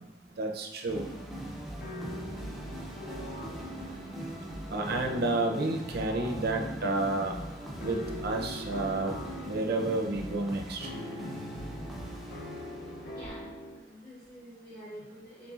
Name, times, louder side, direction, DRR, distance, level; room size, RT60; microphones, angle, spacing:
voice 1, 0.4-1.0 4.7-7.3 7.8-9.2 9.4-10.9, right 2 dB, 55° right, 2 dB, 0.5 m, -30 dB
sound 1, 0.9-13.3, right 1 dB, ahead, 0.5 m, -41 dB
sound 2, 1.8-13.8, left 1 dB, 55° left, 0.6 m, -44 dB
voice 2, 13.1-13.5 13.8-15.5, equal, 20° left, -9 dB, 0.9 m, -47 dB
3.9 x 3.6 x 2.4 m, 1.1 s
head